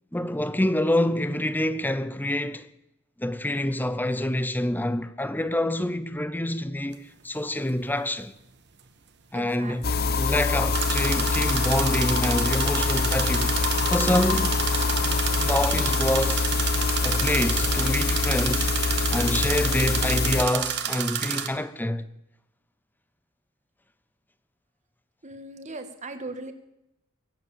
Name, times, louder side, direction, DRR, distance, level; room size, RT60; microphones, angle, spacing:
voice 1, 0.1-2.7 3.2-8.3 9.3-13.5 13.9-14.6 15.4-16.5 17.0-18.8 19.0-22.1, left 1 dB, 10° left, 0.7 m, -27 dB
sound 1, 6.9-7.0 10.7-21.5, right 9 dB, 55° right, 1.3 m, -30 dB
voice 2, 9.3-10.1 25.2-26.5, right 2 dB, 35° right, 1.6 m, -39 dB
sound 2, 9.8-20.5, left 4 dB, 45° left, 0.9 m, -25 dB
23.0 x 8.2 x 7.1 m
head